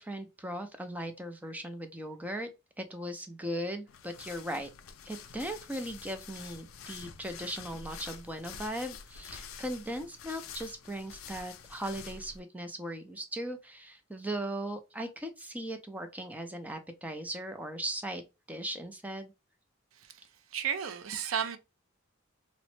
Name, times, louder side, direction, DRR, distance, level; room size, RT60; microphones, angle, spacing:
voice 1, 0.0-2.5 2.8-4.7 5.1-18.2 18.5-19.3, right 1 dB, 10° right, 0.4 m, -38 dB
sound 1, 3.9-12.4, left 6 dB, 80° left, 0.4 m, -47 dB
voice 2, 20.5-21.6, right 8 dB, 75° right, 0.5 m, -33 dB
3.0 x 2.0 x 3.0 m
head